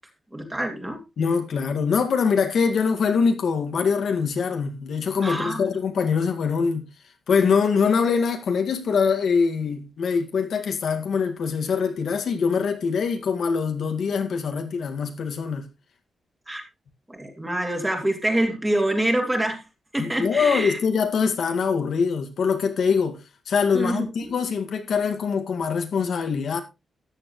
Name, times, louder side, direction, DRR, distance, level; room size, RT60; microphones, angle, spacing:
voice 1, 0.3-1.0 5.2-5.6 16.5-16.6 17.1-19.6 19.9-20.8 23.7-24.3, right 1 dB, 10° right, 2.7 m, -25 dB
voice 2, 1.2-6.9 7.3-15.7 20.0-26.6, left 5 dB, 65° left, 2.0 m, -23 dB
14.0 x 10.0 x 3.1 m
wide cardioid pair, 170°, 0 cm